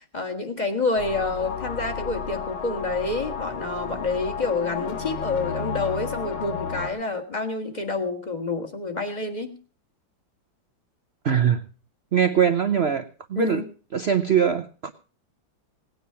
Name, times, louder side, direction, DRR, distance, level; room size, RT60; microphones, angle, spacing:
voice 1, 0.0-9.5 13.3-13.6, left 3 dB, 25° left, 5 dB, 1.7 m, -28 dB
sound 1, 1.0-6.9, left 6 dB, 90° left, 2.5 m, -32 dB
voice 2, 11.2-11.6 12.1-13.0 13.3-13.6 13.9-14.9, right 8 dB, 65° right, 9 dB, 0.6 m, -21 dB
18.0 x 9.5 x 5.6 m, 0.37 s
omnidirectional pair, 2.1 m